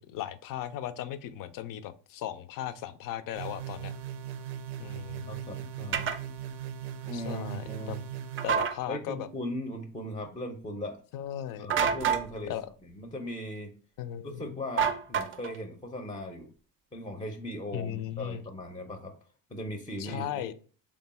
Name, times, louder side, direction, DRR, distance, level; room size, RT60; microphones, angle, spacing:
voice 1, 0.0-3.9 4.8-5.3 7.1-8.0 8.4-9.3 11.1-11.7 12.5-12.7 14.0-14.6 17.7-18.5 20.0-20.5, left 11 dB, 60° left, 12 dB, 0.5 m, -37 dB
sound 1, 3.3-8.5, right 9 dB, 85° right, 0.5 m, -39 dB
voice 2, 5.2-6.1 7.0-8.0 8.9-11.0 11.6-12.5 13.0-13.7 14.2-16.5 16.9-19.1 19.5-20.5, left 1 dB, 10° left, 4 dB, 0.5 m, -38 dB
sound 2, 5.9-6.2 8.4-8.8 11.7-12.3 14.8-15.6, right 7 dB, 35° right, 0.4 m, -27 dB
3.3 x 2.3 x 4.1 m, 0.40 s
cardioid pair, 95°, 38 cm